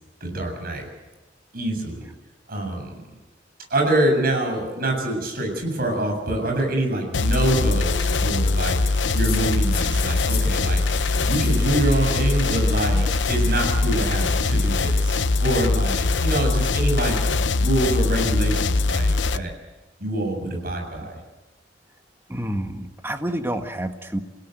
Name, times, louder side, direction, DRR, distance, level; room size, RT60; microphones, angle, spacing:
voice 1, 0.2-0.9 1.5-2.1 2.5-3.0 3.7-8.8 9.1-10.8 11.3-17.2 17.6-19.5 20.0-21.2, right 1 dB, 55° right, 2 dB, 7.5 m, -25 dB
sound 1, 7.1-19.4, left 3 dB, 85° left, 0.8 m, -22 dB
sound 2, 8.8-15.1, right 3 dB, 80° right, 5.0 m, -42 dB
sound 3, 9.1-10.6 10.8-11.7 11.9-12.8 13.8-14.5, left 9 dB, 55° left, 5.2 m, -37 dB
voice 2, 22.3-24.2, right 1 dB, 15° right, 6 dB, 1.7 m, -28 dB
28.0 x 17.0 x 8.0 m, 1.2 s
head